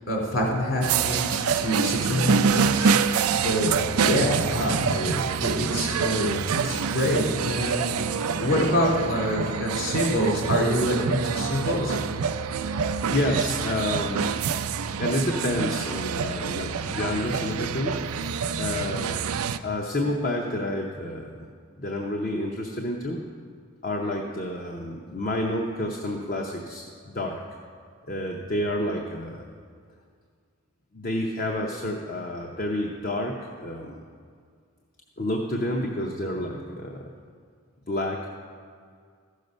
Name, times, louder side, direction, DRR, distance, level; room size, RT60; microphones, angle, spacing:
voice 1, 0.0-3.0 3.4-6.4 6.6-12.0, equal, 60° left, -3 dB, 2.9 m, -26 dB
sound 1, 0.8-19.6, right 6 dB, 85° right, 0.4 m, -26 dB
voice 2, 13.1-14.4 15.0-18.0 18.6-19.3 19.6-21.4 21.8-23.2 23.8-26.9 27.1-27.4 28.1-29.4 30.9-34.0 35.2-37.0 37.9-38.3, left 1 dB, 40° left, 1 dB, 0.7 m, -29 dB
14.0 x 6.5 x 5.3 m, 2.1 s
head